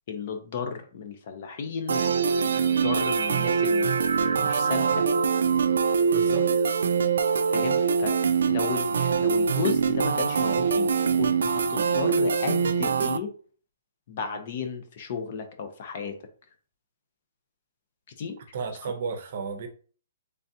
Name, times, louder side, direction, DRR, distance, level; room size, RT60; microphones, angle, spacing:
voice 1, 0.1-3.9 4.3-5.1 7.5-8.1 8.4-13.3 14.1-16.2 18.2-18.4 18.8-18.9, left 6 dB, 35° left, 6 dB, 0.6 m, -34 dB
sound 1, 1.9-13.2, right 6 dB, 75° right, 0.3 m, -23 dB
voice 2, 6.1-6.5 18.5-19.7, right 5 dB, 40° right, 7 dB, 0.7 m, -33 dB
3.9 x 3.4 x 2.7 m, 0.42 s
hypercardioid pair, 175°, 0 cm